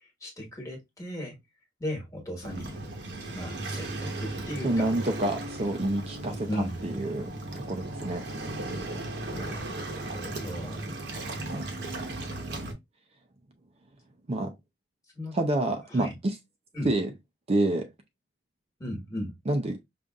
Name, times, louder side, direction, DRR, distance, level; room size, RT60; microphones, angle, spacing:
voice 1, 0.2-1.4 1.8-2.8 3.3-4.9 6.5-6.8 9.3-11.1 15.1-15.4 15.9-16.1 16.7-16.9 18.8-19.3, equal, 20° left, 1.3 m, -36 dB
Waves surf, 2.4-12.7, right 2 dB, 70° right, 1.0 m, -36 dB
voice 2, 4.6-7.3 7.5-8.3 11.5-11.7 14.3-14.5 15.3-16.4 16.8-17.1 17.5-17.9 19.5-19.8, right 1 dB, 35° right, 0.5 m, -28 dB
5.2 x 2.5 x 2.3 m
head